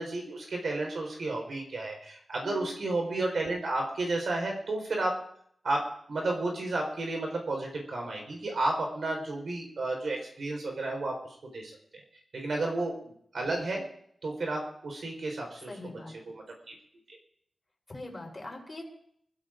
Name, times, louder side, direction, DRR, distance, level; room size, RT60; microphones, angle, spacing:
voice 1, 0.0-5.1 5.6-5.8 6.1-11.7 12.3-13.8 14.2-15.7 16.2-16.8, right 2 dB, 75° right, 1 dB, 4.2 m, -32 dB
voice 2, 15.7-16.1 17.9-18.8, left 2 dB, 25° left, 0 dB, 3.6 m, -42 dB
26.5 x 15.5 x 2.6 m, 0.67 s
wide cardioid pair, 130°, 0 cm